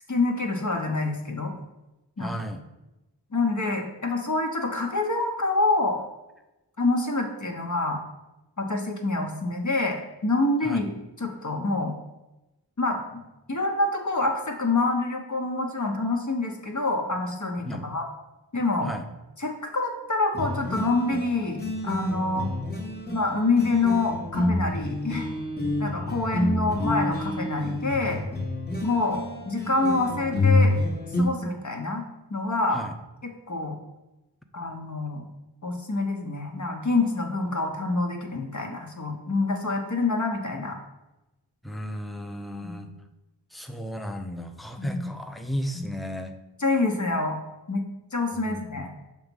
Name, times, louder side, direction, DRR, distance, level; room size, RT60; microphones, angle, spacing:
voice 1, 0.1-1.5 2.2-2.3 3.3-6.0 6.8-8.0 8.6-10.9 11.2-12.0 12.8-13.2 13.5-18.1 18.5-18.9 19.4-22.5 23.1-25.3 25.8-28.2 28.8-30.7 31.1-32.0 32.3-32.8 33.2-33.8 34.5-35.3 35.6-40.8 42.6-42.9 44.8-45.0 45.7-45.9 46.6-47.4 47.7-47.8 48.1-48.9, left 2 dB, 45° left, 3 dB, 1.1 m, -26 dB
voice 2, 2.2-2.6 10.6-10.8 17.6-17.9 18.8-19.1 32.7-33.0 41.6-42.9 43.5-46.3 48.4-48.9, equal, ahead, 6 dB, 0.6 m, -34 dB
sound 1, 20.3-31.2, left 2 dB, 25° left, 1.1 m, -28 dB
6.4 x 3.1 x 5.3 m, 0.99 s
wide cardioid pair, 40°, 41 cm